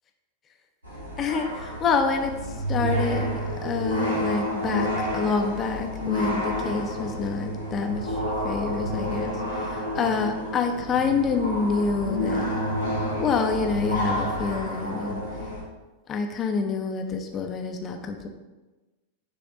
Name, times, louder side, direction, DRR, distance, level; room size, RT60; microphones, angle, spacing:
sound 1, 0.8-15.6, equal, 80° right, 1.9 m, -29 dB
voice 1, 1.2-2.3 2.7-8.2 8.4-12.5 13.2-15.2 16.1-18.3, left 5 dB, 25° left, 4 dB, 0.8 m, -27 dB
9.4 x 3.4 x 4.1 m, 1.2 s
figure-of-eight pair, 90°, 0 cm